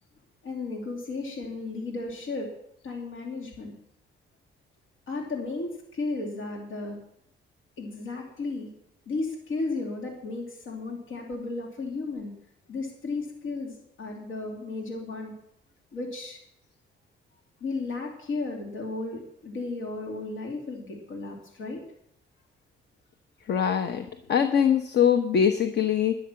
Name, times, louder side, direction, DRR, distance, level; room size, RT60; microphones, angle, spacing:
voice 1, 0.4-2.5 2.8-3.7 5.1-7.0 7.8-8.7 9.1-12.3 12.7-15.3 15.9-16.4 17.6-21.8, left 3 dB, 85° left, 0 dB, 2.8 m, -34 dB
voice 2, 23.5-26.2, left 8 dB, 60° left, 8 dB, 1.0 m, -23 dB
11.5 x 11.0 x 5.8 m, 0.72 s
cardioid pair, 90°, 20 cm